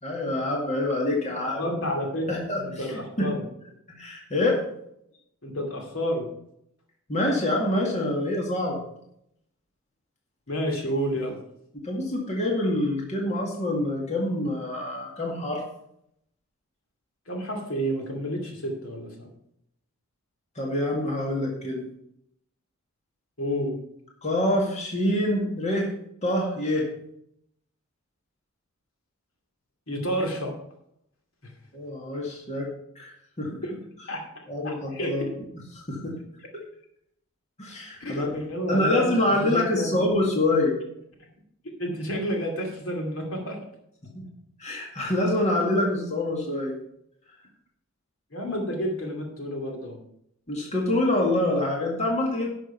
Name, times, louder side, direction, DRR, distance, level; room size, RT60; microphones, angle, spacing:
voice 1, 0.0-1.6 2.3-3.3 3.9-4.6 7.1-8.8 11.8-15.6 20.6-21.9 24.2-25.9 26.2-26.9 31.7-32.7 33.0-33.6 34.5-35.2 35.8-36.1 37.6-38.3 38.7-40.7 44.1-44.2 44.6-46.7 50.5-52.5, left 1 dB, 30° left, -1 dB, 2.1 m, -26 dB
voice 2, 1.6-2.3 2.6-3.4 5.4-6.2 10.5-11.4 17.3-19.3 23.4-23.7 29.9-30.5 34.1-34.2 34.6-35.3 38.0-39.1 39.4-39.9 41.8-43.6 48.3-50.0, equal, 75° left, 2 dB, 2.5 m, -30 dB
11.5 x 6.3 x 5.6 m, 0.74 s
head